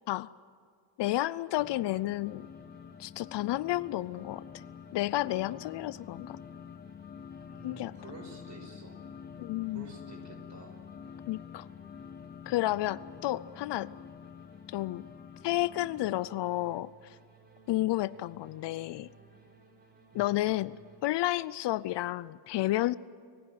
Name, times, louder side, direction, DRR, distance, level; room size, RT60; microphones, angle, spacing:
voice 1, 1.0-2.5 3.0-4.4 4.9-6.4 7.6-7.9 9.4-9.9 11.3-11.7 12.5-13.9 14.7-15.1 15.4-17.2 17.7-19.1 20.1-20.8 21.0-23.0, left 16 dB, 65° left, 19 dB, 0.6 m, -31 dB
sound 1, 1.3-21.0, right 3 dB, 20° right, 3.9 m, -62 dB
sound 2, 1.6-16.3, left 7 dB, 20° left, 0.5 m, -48 dB
voice 2, 7.5-9.0 9.7-10.8 12.5-12.7 20.1-20.4, right 2 dB, 35° right, 5 dB, 5.6 m, -50 dB
29.5 x 15.5 x 9.4 m, 2.2 s
cardioid pair, 105°, 46 cm